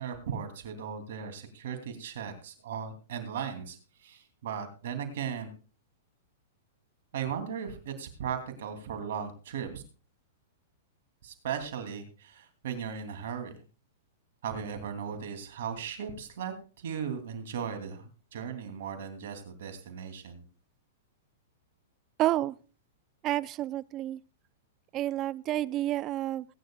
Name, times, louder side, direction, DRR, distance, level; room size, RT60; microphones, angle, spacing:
voice 1, 0.0-5.5 7.1-9.8 11.2-13.5 14.4-20.4, right 7 dB, 70° right, 7 dB, 2.9 m, -37 dB
voice 2, 22.2-22.5 23.2-24.2 24.9-26.5, right 14 dB, 35° right, 20 dB, 0.5 m, -29 dB
20.5 x 9.7 x 2.4 m, 0.35 s
hypercardioid pair, 125°, 0 cm